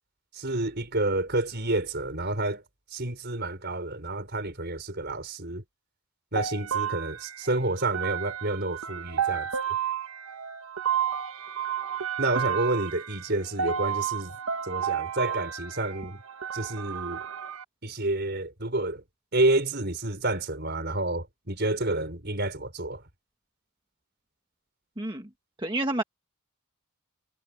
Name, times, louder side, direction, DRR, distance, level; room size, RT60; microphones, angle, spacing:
voice 1, 0.3-2.6 2.9-5.6 6.3-9.5 12.2-14.3 14.6-16.2 16.5-17.2 17.8-19.0 19.3-23.0, right 2 dB, 50° right, 5.0 m, -29 dB
sound 1, 6.4-17.6, right 8 dB, 70° right, 1.1 m, -31 dB
voice 2, 25.0-25.3 25.6-26.0, right 2 dB, 20° right, 1.6 m, -29 dB
head